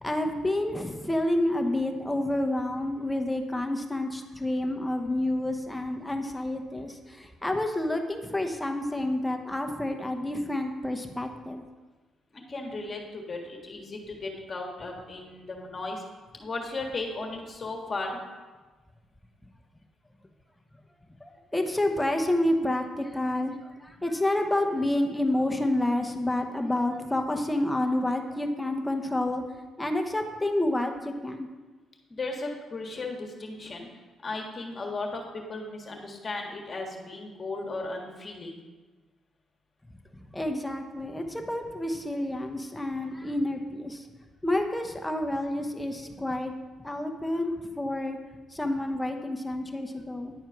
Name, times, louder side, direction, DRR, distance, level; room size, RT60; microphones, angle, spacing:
voice 1, 0.0-11.6 21.2-29.4 29.8-31.5 40.3-44.1 44.4-46.5 46.8-48.2 48.5-50.3, left 1 dB, 10° left, 4 dB, 0.9 m, -29 dB
voice 2, 12.3-16.0 16.4-18.2 32.1-33.9 34.2-38.7, left 3 dB, 35° left, 1 dB, 1.6 m, -36 dB
10.5 x 4.5 x 5.9 m, 1.3 s
cardioid pair, 90°, 0 cm